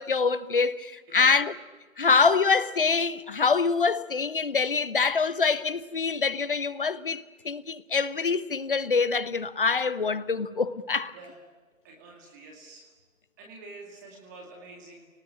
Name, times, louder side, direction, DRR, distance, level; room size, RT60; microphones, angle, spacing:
voice 1, 0.0-1.5 2.0-11.1, left 5 dB, 40° left, 1.0 m, -25 dB
voice 2, 11.1-11.4 11.8-12.9 13.4-15.1, right 3 dB, 15° right, 2.3 m, -47 dB
29.0 x 19.0 x 10.0 m
figure-of-eight pair, 165°, 41 cm